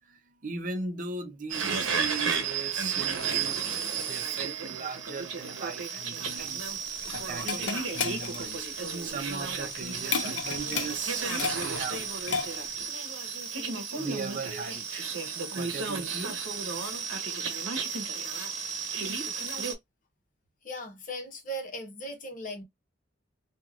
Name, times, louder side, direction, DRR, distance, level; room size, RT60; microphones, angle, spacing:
voice 1, 0.0-3.6 3.9-12.1 14.0-15.2 15.5-16.4, right 4 dB, 45° right, 0.6 m, -39 dB
sound 1, 1.5-19.7, right 5 dB, 85° right, 0.8 m, -33 dB
sound 2, 6.4-12.8, left 6 dB, 75° left, 0.5 m, -35 dB
voice 2, 20.6-22.6, equal, 45° left, 1.0 m, -38 dB
3.1 x 2.3 x 2.4 m
head